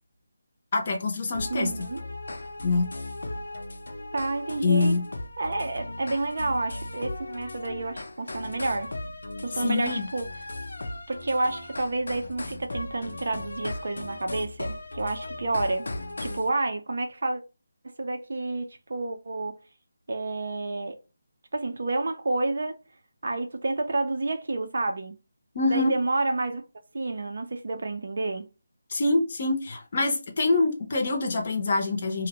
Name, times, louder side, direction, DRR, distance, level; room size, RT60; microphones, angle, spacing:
voice 1, 0.7-1.7 2.6-2.9 4.6-5.0 9.6-10.1 25.5-25.9 28.9-32.3, left 3 dB, 30° left, 0.6 m, -25 dB
sound 1, 1.3-16.5, left 2 dB, 90° left, 0.5 m, -37 dB
voice 2, 1.5-2.0 4.1-5.0 5.4-8.9 9.4-10.2 11.1-15.9 16.2-17.4 17.8-19.6 20.1-21.0 21.5-22.8 23.2-25.2 25.7-26.6 26.9-28.5, right 2 dB, 55° right, 0.4 m, -29 dB
2.6 x 2.1 x 2.8 m
figure-of-eight pair, 175°, 0 cm